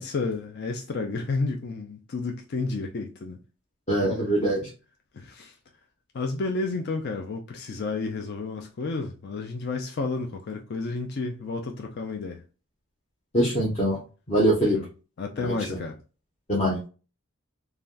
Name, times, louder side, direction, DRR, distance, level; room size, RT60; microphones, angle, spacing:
voice 1, 0.0-3.4 4.0-4.4 5.1-5.5 6.1-12.4 14.7-14.9 15.2-16.0, left 3 dB, 45° left, 0.4 m, -31 dB
voice 2, 3.9-4.7 13.3-14.0 14.3-14.8 15.4-15.8 16.5-16.8, right 1 dB, 30° left, 0.8 m, -23 dB
3.3 x 2.2 x 2.4 m
head